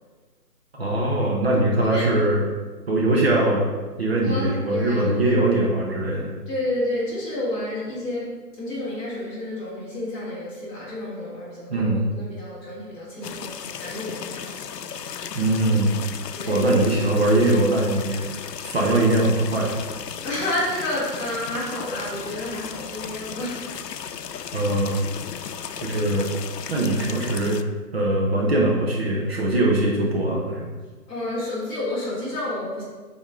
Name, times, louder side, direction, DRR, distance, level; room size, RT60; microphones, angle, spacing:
voice 1, 0.8-2.4 2.9-3.7 4.0-6.3 11.7-12.0 15.3-16.0 16.5-18.2 18.6-19.7 24.5-25.1 25.8-26.3 26.7-27.6 27.9-30.6, right 1 dB, 40° right, -3 dB, 1.1 m, -21 dB
voice 2, 4.2-5.1 6.5-14.5 16.3-16.6 20.2-23.6 24.3-24.4 31.1-32.8, left 1 dB, 10° left, -11 dB, 1.6 m, -30 dB
sound 1, 13.2-27.6, left 7 dB, 85° left, 0.6 m, -35 dB
8.3 x 4.2 x 3.7 m, 1.4 s
hypercardioid pair, 165°, 47 cm